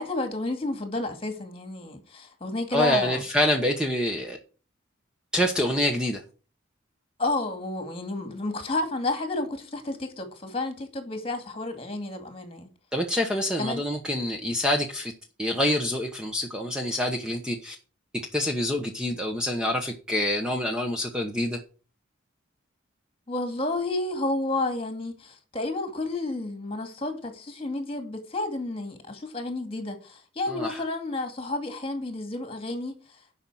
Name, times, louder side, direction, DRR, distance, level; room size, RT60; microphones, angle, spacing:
voice 1, 0.0-3.2 7.2-12.7 13.6-13.8 23.3-33.0, left 2 dB, 30° left, 2.2 m, -31 dB
voice 2, 2.7-4.4 5.3-6.2 12.9-15.1 15.4-17.8 18.3-21.6 30.5-30.8, left 1 dB, 5° right, 1.0 m, -26 dB
11.0 x 5.6 x 6.3 m
head